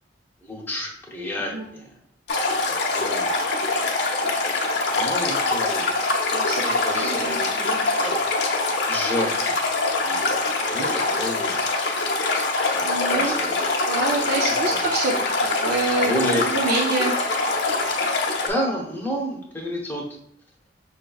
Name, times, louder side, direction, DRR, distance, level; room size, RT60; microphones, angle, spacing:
voice 1, 0.4-1.9 2.6-3.4 4.9-6.0 6.6-7.5 8.0-8.3 8.9-9.6 9.9-11.6 13.1-13.7 14.6-14.8 16.0-16.6 18.5-20.0, equal, 10° left, -2 dB, 0.8 m, -30 dB
Stream, 2.3-18.5, left 3 dB, 65° left, 0.7 m, -24 dB
voice 2, 6.3-7.8 12.8-13.4 13.9-15.1 15.4-17.1, right 3 dB, 55° right, -1 dB, 0.5 m, -27 dB
5.5 x 2.7 x 2.3 m, 0.71 s
head